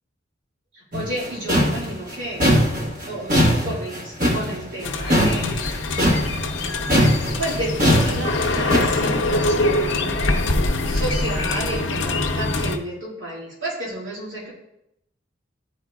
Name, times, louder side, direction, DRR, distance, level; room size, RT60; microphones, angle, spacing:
voice 1, 0.7-2.4 3.0-6.0 7.1-10.5 10.8-14.5, right 1 dB, 80° right, -7 dB, 2.3 m, -31 dB
sound 1, 0.9-6.6 6.9-9.1, equal, 45° right, 1.2 m, -20 dB
sound 2, 4.8-12.8, left 2 dB, 75° left, 0.7 m, -24 dB
11.5 x 4.6 x 2.3 m, 0.84 s
head